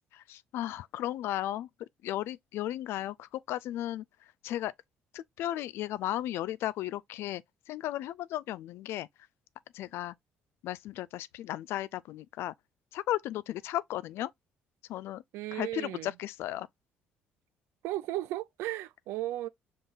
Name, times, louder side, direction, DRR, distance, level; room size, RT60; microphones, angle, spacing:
voice 1, 0.3-1.7 2.0-4.0 4.4-4.7 5.1-7.4 7.7-9.1 9.7-10.1 10.6-12.5 12.9-14.3 14.9-15.2 15.5-16.7, left 13 dB, 70° left, 0.4 m, -35 dB
voice 2, 15.3-16.1 17.8-19.5, right 15 dB, 80° right, 0.5 m, -35 dB
5.3 x 3.8 x 2.5 m
supercardioid pair, 75°, 4 cm